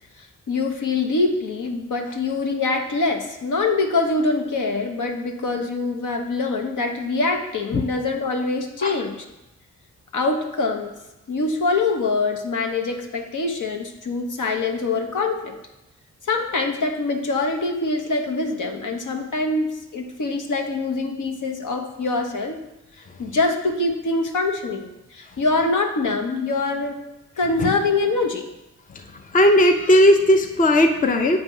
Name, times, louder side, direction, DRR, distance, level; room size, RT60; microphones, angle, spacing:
voice 1, 0.2-9.2 10.1-10.9 11.3-15.6 16.2-22.6 23.2-27.0 27.4-28.4 31.1-31.3, left 3 dB, 65° left, 4 dB, 1.0 m, -24 dB
voice 2, 29.3-31.4, left 1 dB, 25° left, 5 dB, 0.6 m, -16 dB
7.8 x 3.0 x 5.4 m, 0.94 s
cardioid pair, 55°, 33 cm